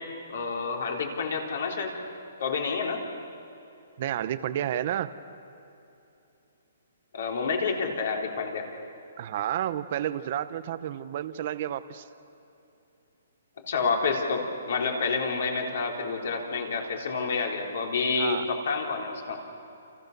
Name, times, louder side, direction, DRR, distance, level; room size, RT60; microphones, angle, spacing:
voice 1, 0.0-1.9 2.4-3.0 7.1-8.7 13.7-19.4, left 4 dB, 55° left, 1 dB, 3.9 m, -29 dB
voice 2, 4.0-5.1 9.2-12.1 18.2-18.5, right 11 dB, 35° right, 12 dB, 0.8 m, -31 dB
29.0 x 28.0 x 6.8 m, 2.8 s
hypercardioid pair, 175°, 0 cm